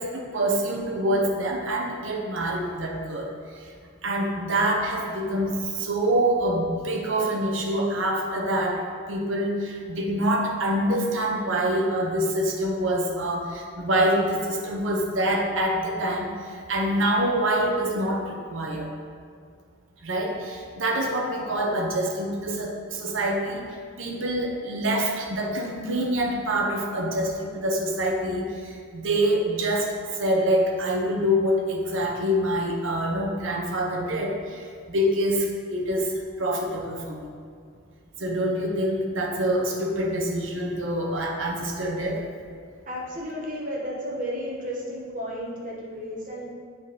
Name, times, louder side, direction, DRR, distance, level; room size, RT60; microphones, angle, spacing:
voice 1, 0.0-3.3 4.0-16.3 16.7-18.9 20.0-23.6 24.0-36.1 36.4-37.3 38.2-42.2, right 1 dB, 75° right, 0 dB, 1.0 m, -26 dB
voice 2, 42.9-46.5, equal, 40° right, -4 dB, 1.3 m, -33 dB
7.5 x 4.0 x 4.2 m, 2.1 s
head